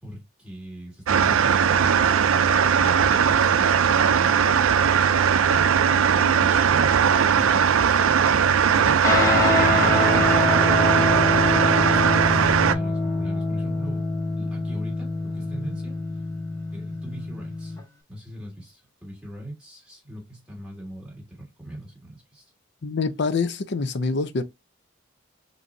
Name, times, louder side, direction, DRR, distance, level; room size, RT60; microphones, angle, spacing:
voice 1, 0.0-4.4 6.4-10.7 11.8-14.1 14.4-16.0 16.7-17.8 18.1-22.5, right 1 dB, 5° right, 2.6 m, -40 dB
sound 1, 1.1-12.7, right 7 dB, 85° right, 0.4 m, -19 dB
Guitar, 9.0-17.8, left 2 dB, 15° left, 1.4 m, -25 dB
voice 2, 22.8-24.4, left 4 dB, 55° left, 0.5 m, -25 dB
5.1 x 3.0 x 2.6 m
head